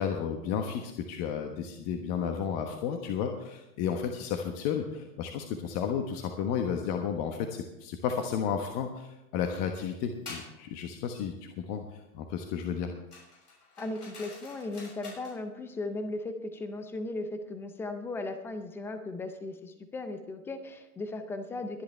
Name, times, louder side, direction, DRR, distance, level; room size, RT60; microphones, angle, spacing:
voice 1, 0.0-11.8 12.1-12.9, left 7 dB, 35° left, 4 dB, 1.3 m, -32 dB
sound 1, 10.2-10.5 13.1-15.4, left 3 dB, 85° left, 6.5 m, -47 dB
voice 2, 13.8-21.8, left 2 dB, 5° left, 9 dB, 0.4 m, -37 dB
22.0 x 10.5 x 3.4 m, 0.90 s
hypercardioid pair, 125°, 46 cm